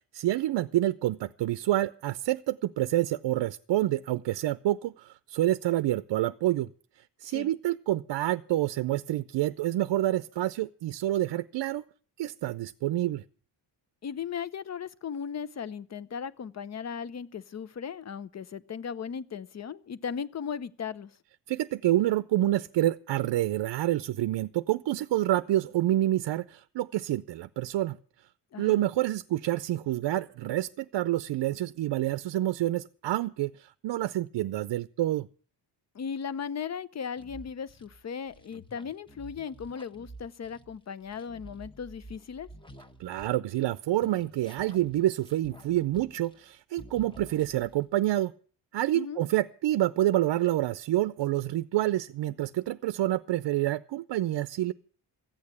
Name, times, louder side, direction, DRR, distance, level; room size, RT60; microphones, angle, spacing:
voice 1, 0.1-6.7 7.0-11.8 12.2-13.2 21.5-28.0 28.6-35.3 43.0-48.3 48.7-54.7, right 14 dB, 75° right, 0.6 m, -28 dB
voice 2, 14.0-21.2 28.5-28.8 35.9-42.5 48.9-49.2, left 7 dB, 40° left, 0.7 m, -37 dB
sound 1, 37.2-43.7 44.0-46.5 46.8-47.8, right 1 dB, 10° left, 1.1 m, -50 dB
14.5 x 8.7 x 8.3 m
cardioid pair, 120°, 43 cm